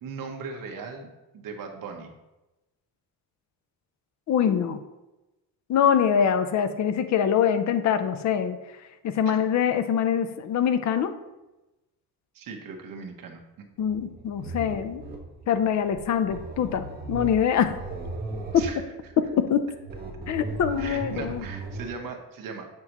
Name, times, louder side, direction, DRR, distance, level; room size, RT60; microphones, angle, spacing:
voice 1, 0.0-1.1 1.3-2.1 9.3-9.4 12.3-13.7 18.5-18.8 20.8-22.7, right 5 dB, 60° right, 3 dB, 1.1 m, -38 dB
voice 2, 4.3-4.8 5.7-8.6 9.0-11.1 13.8-15.0 15.5-17.8 18.5-18.7 19.2-19.7 20.3-21.4, left 8 dB, 50° left, 10 dB, 0.6 m, -24 dB
sound 1, 13.8-21.9, right 3 dB, 25° right, 1.3 m, -38 dB
7.7 x 5.9 x 3.0 m, 1.0 s
cardioid pair, 155°, 37 cm